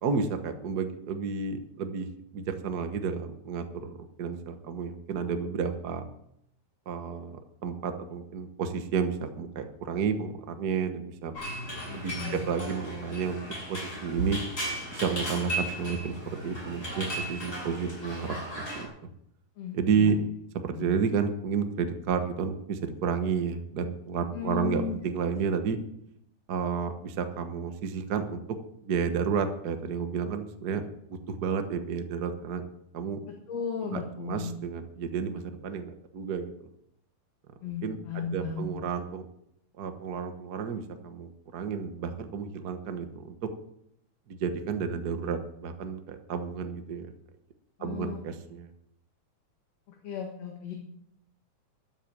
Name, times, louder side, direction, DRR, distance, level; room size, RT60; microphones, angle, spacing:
voice 1, 0.0-2.1 2.3-6.1 6.9-11.3 11.9-14.4 14.9-18.4 18.7-18.9 19.7-20.2 20.6-25.8 26.5-28.4 28.8-30.8 31.3-32.6 32.9-33.2 33.9-36.5 37.8-39.3 39.8-43.5 44.3-47.1 47.8-48.7, right 6 dB, 60° right, 7 dB, 1.0 m, -31 dB
sound 1, 11.3-18.8, right 1 dB, 25° left, 8.3 m, -36 dB
voice 2, 11.9-12.4 19.6-20.1 20.8-20.9 24.3-25.0 33.3-34.6 37.6-38.7 47.8-48.2 49.9-50.7, left 7 dB, 60° left, 1 dB, 2.7 m, -35 dB
13.5 x 10.0 x 7.4 m, 0.75 s
omnidirectional pair, 3.6 m